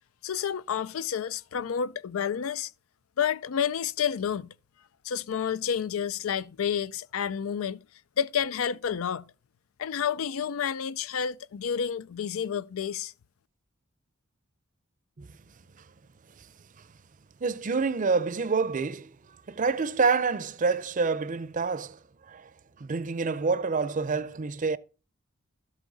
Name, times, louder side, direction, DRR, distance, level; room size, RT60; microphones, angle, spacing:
voice 1, 0.2-2.7 3.2-4.5 5.0-7.8 8.2-9.3 9.8-13.1, left 8 dB, 90° left, 0.4 m, -30 dB
voice 2, 17.4-19.2 19.5-22.5 22.8-24.8, right 4 dB, 40° right, 0.5 m, -27 dB
12.5 x 8.3 x 4.0 m
head